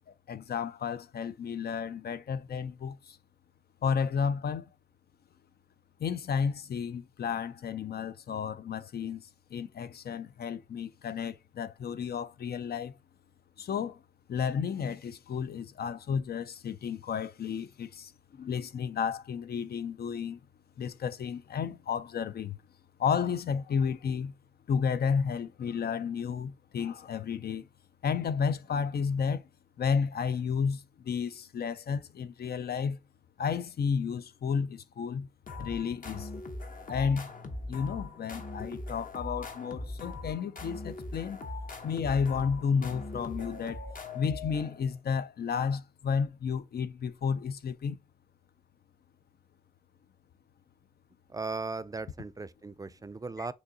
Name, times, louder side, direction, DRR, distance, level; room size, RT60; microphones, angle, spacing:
voice 1, 0.3-3.2 3.8-4.7 6.0-9.2 9.5-12.9 13.6-14.0 14.3-20.4 20.8-22.6 23.0-24.3 24.7-27.7 28.0-29.5 29.8-33.0 33.4-35.3 35.6-36.3 36.9-37.3 37.7-41.4 41.8-43.8 44.1-48.0 53.4-53.5, left 6 dB, 85° left, 0.4 m, -32 dB
sound 1, 35.5-45.0, left 2 dB, 60° left, 0.8 m, -41 dB
voice 2, 51.3-53.5, right 3 dB, 20° right, 0.3 m, -37 dB
6.3 x 2.7 x 2.7 m
wide cardioid pair, 70°, 16 cm